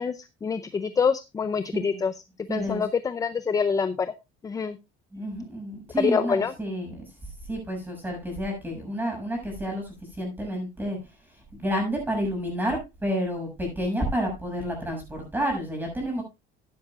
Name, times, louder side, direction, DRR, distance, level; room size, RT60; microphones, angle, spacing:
voice 1, 0.0-2.1 2.5-4.1 4.4-4.8 6.0-6.5, left 5 dB, 15° left, 12 dB, 0.5 m, -26 dB
voice 2, 2.5-2.8 5.1-7.1 7.5-9.8 10.2-11.0 11.5-16.2, equal, 10° right, 2 dB, 6.8 m, -30 dB
15.0 x 10.5 x 2.4 m, 0.24 s
cardioid pair, 145°, 20 cm